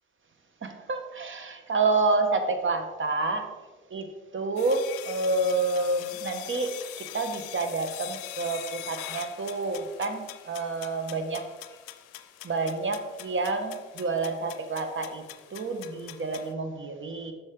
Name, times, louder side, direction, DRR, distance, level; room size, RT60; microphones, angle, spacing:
voice 1, 0.6-3.5 3.9-4.1 4.3-11.4 12.4-15.2 15.5-17.3, right 3 dB, 35° right, 6 dB, 1.3 m, -29 dB
sound 1, 4.6-16.5, left 15 dB, 85° left, 0.5 m, -43 dB
7.5 x 6.3 x 3.8 m, 1.2 s
supercardioid pair, 70°, 32 cm